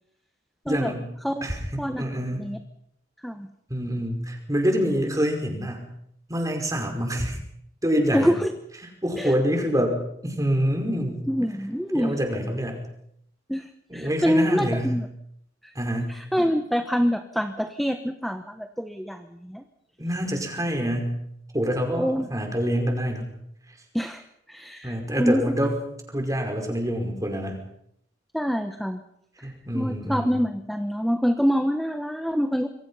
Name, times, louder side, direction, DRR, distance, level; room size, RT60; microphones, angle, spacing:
voice 1, 0.7-1.1 1.4-2.4 3.7-5.9 6.3-7.4 7.8-8.3 9.0-11.3 11.9-12.8 13.9-15.0 15.8-16.1 20.0-21.2 21.5-23.3 24.8-25.8 26.1-27.6 29.4-30.4, equal, 15° right, 3 dB, 5.3 m, -26 dB
voice 2, 8.1-8.5 9.2-9.3 11.3-12.1 13.5-15.1 15.6-15.7 16.1-19.6 22.0-22.3 23.9-24.2 24.5-25.4 28.3-29.0 29.7-32.7, equal, ahead, 7 dB, 1.1 m, -25 dB
27.0 x 24.0 x 5.6 m, 0.72 s
head